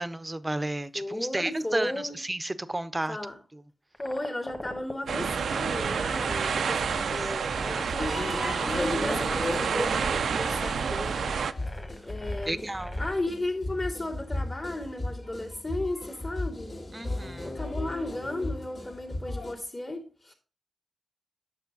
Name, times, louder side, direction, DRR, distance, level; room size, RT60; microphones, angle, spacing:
voice 1, 0.0-3.2 3.5-3.6 6.5-6.9 7.6-7.8 12.4-13.0 16.9-17.6, right 1 dB, 20° right, 0.6 m, -33 dB
voice 2, 0.9-2.2 3.1-3.4 4.0-11.2 11.6-12.6 13.0-16.8 17.4-20.3, left 1 dB, 50° left, 2.1 m, -35 dB
sound 1, 3.9-13.3, left 1 dB, 20° left, 1.5 m, -42 dB
sound 2, 5.1-11.5, right 6 dB, 85° right, 0.4 m, -29 dB
sound 3, 8.0-19.5, left 1 dB, 70° left, 2.2 m, -35 dB
8.2 x 6.2 x 3.9 m
cardioid pair, 55°, 0 cm